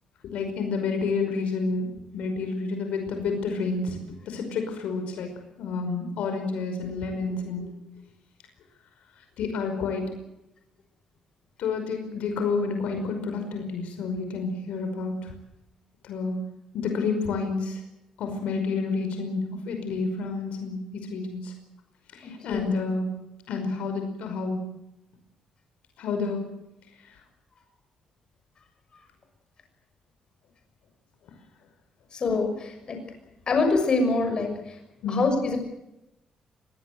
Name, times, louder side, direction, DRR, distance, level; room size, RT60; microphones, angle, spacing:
voice 1, 0.2-1.9 2.1-4.0 4.3-5.3 5.6-7.7 9.4-10.1 11.6-15.3 16.0-16.4 16.7-17.8 18.2-21.5 22.1-23.2 23.5-24.7 26.0-26.4 35.0-35.2, left 4 dB, 80° left, 5 dB, 5.4 m, -29 dB
voice 2, 32.1-33.0 33.5-34.8 35.1-35.6, left 3 dB, 40° left, 5 dB, 6.5 m, -25 dB
24.5 x 19.0 x 7.9 m, 0.87 s
cardioid pair, 135°, 2 cm